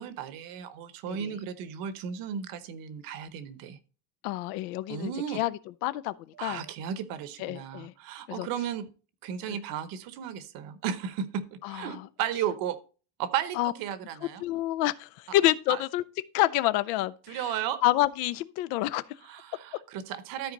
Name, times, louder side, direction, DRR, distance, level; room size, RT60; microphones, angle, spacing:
voice 1, 0.0-3.8 4.9-5.4 6.3-8.9 9.2-12.8 13.2-14.4 15.7-15.8 17.3-17.8 19.2-20.5, right 9 dB, 50° right, 0.9 m, -34 dB
voice 2, 4.2-5.5 5.8-6.6 7.4-7.9 8.3-8.5 9.5-9.6 11.6-12.0 13.6-13.7 14.4-16.0 16.3-17.4 17.8-19.0, left 16 dB, 80° left, 0.7 m, -28 dB
13.0 x 4.7 x 3.9 m
cardioid pair, 175°, 46 cm